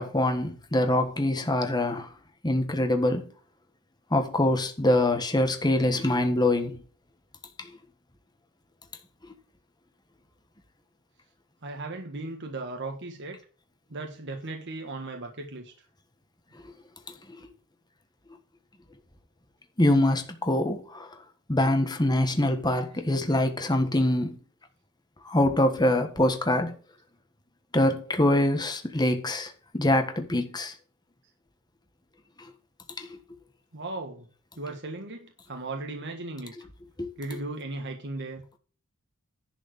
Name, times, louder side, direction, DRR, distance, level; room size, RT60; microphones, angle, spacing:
voice 1, 0.0-2.1 2.4-3.3 4.1-6.8 7.6-7.7 19.8-21.1 21.5-24.4 25.2-26.8 27.7-30.7 32.4-32.5 33.0-33.2 37.0-37.1, left 1 dB, 20° left, 1.5 m, -24 dB
voice 2, 11.6-13.4 13.9-15.7 22.9-23.0 33.7-34.3 34.6-36.5 37.2-38.4, right 2 dB, 55° right, 1.5 m, -36 dB
11.0 x 4.9 x 7.9 m
head